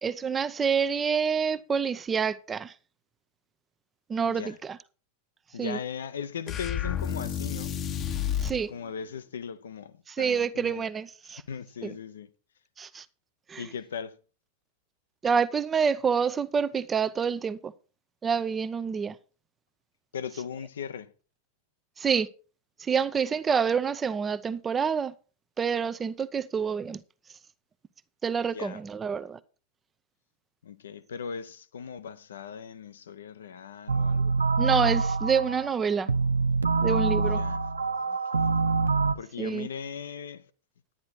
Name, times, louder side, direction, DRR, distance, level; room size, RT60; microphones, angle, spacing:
voice 1, 0.0-2.7 4.1-4.8 5.6-5.8 8.4-8.7 10.2-11.4 11.8-11.9 12.8-13.0 13.5-13.6 15.2-17.7 18.2-19.1 22.0-22.3 22.8-25.1 25.6-27.0 28.2-29.4 34.6-36.1 36.8-37.4 39.4-39.7, right 6 dB, 20° right, 0.6 m, -27 dB
voice 2, 4.3-4.6 5.5-7.7 8.7-10.9 11.5-12.3 13.6-14.2 20.1-21.1 28.5-28.8 30.6-34.4 37.2-37.7 38.1-38.6 39.1-40.5, left 7 dB, 65° left, 0.7 m, -38 dB
sound 1, 6.5-8.6, left 9 dB, 30° left, 0.9 m, -30 dB
sound 2, 33.9-39.1, right 4 dB, 75° right, 0.5 m, -25 dB
10.5 x 9.7 x 4.4 m
figure-of-eight pair, 90°, 0 cm